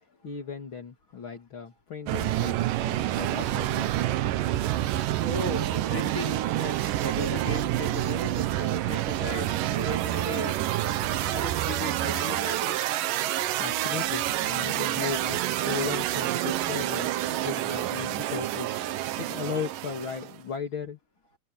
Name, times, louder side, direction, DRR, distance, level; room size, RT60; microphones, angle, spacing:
voice 1, 0.2-4.0 13.6-18.7 19.2-21.0, left 6 dB, 35° left, 2.3 m, -36 dB
sound 1, 2.1-20.4, right 14 dB, 85° right, 1.9 m, -28 dB
voice 2, 5.2-13.0, left 1 dB, 20° left, 4.0 m, -37 dB
omnidirectional pair, 5.3 m